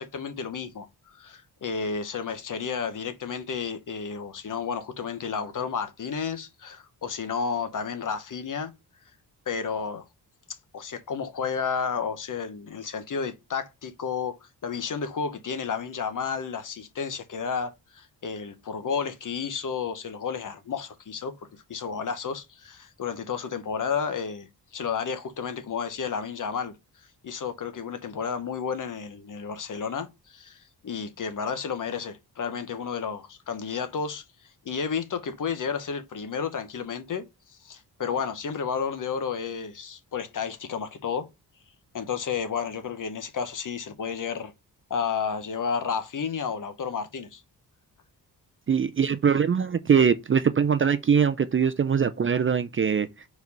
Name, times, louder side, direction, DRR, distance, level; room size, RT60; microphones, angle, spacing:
voice 1, 0.0-8.7 9.5-10.0 10.7-14.4 14.6-26.7 27.2-34.2 34.6-41.3 41.9-44.5 44.9-47.4, left 6 dB, 50° left, 1.1 m, -32 dB
voice 2, 48.7-53.1, right 7 dB, 35° right, 0.4 m, -22 dB
4.7 x 4.5 x 5.4 m
wide cardioid pair, 155°, 40 cm